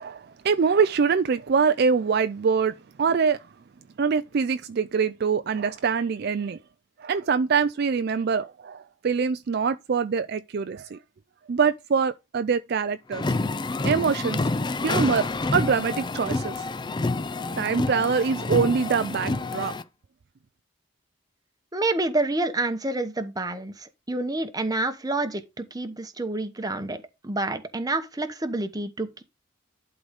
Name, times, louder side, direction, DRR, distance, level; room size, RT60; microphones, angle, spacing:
voice 1, 0.0-3.5 4.0-6.6 7.0-11.0 11.5-13.4 13.8-14.5 14.8-15.3 15.5-16.7 17.6-19.8, right 5 dB, 50° right, 0.4 m, -24 dB
sound 1, 13.1-19.8, left 3 dB, 20° left, 0.4 m, -28 dB
sound 2, 13.1-19.3, equal, 5° left, 2.2 m, -52 dB
voice 2, 21.7-29.2, right 2 dB, 20° right, 0.9 m, -28 dB
11.5 x 3.9 x 5.0 m
head